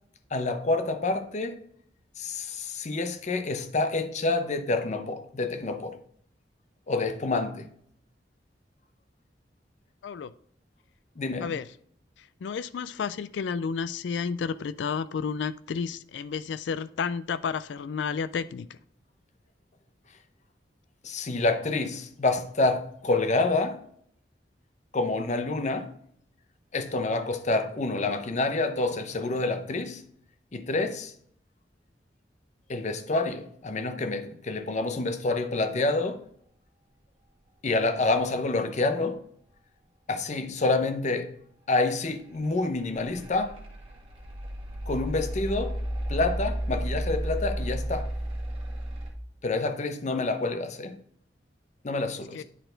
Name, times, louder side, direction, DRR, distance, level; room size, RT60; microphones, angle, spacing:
voice 1, 0.3-1.6 2.2-6.0 6.9-7.7 11.2-11.5 21.0-23.8 24.9-25.9 26.7-30.0 30.5-31.1 32.7-36.2 37.6-39.2 40.1-41.3 41.7-43.6 44.9-45.7 46.1-48.1 49.4-51.0 51.8-52.4, left 3 dB, 40° left, 0.7 m, -28 dB
voice 2, 12.2-18.8 50.1-50.2 52.3-52.4, left 6 dB, 75° left, 0.3 m, -31 dB
sound 1, 42.7-49.1, equal, 30° right, 1.8 m, -32 dB
10.0 x 4.3 x 3.9 m
head